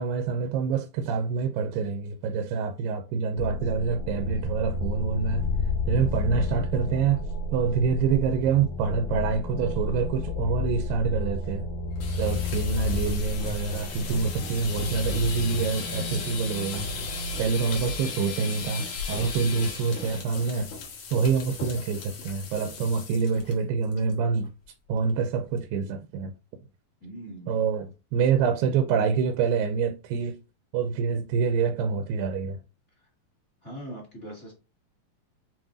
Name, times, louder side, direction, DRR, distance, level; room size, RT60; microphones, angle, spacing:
voice 1, 0.0-5.5 5.9-7.3 7.5-11.7 12.2-16.9 17.4-20.7 21.1-24.5 24.9-26.3 27.5-30.4 30.7-32.6, right 5 dB, 85° right, 2.3 m, -26 dB
sound 1, 3.4-18.9, left 3 dB, 80° left, 1.5 m, -32 dB
sound 2, 11.9-23.5 23.8-24.1 24.4-24.5 24.9-25.3, left 5 dB, 60° left, 1.9 m, -37 dB
voice 2, 27.0-27.6 33.6-34.5, right 1 dB, 30° left, 1.4 m, -41 dB
7.1 x 2.9 x 2.5 m
omnidirectional pair, 4.1 m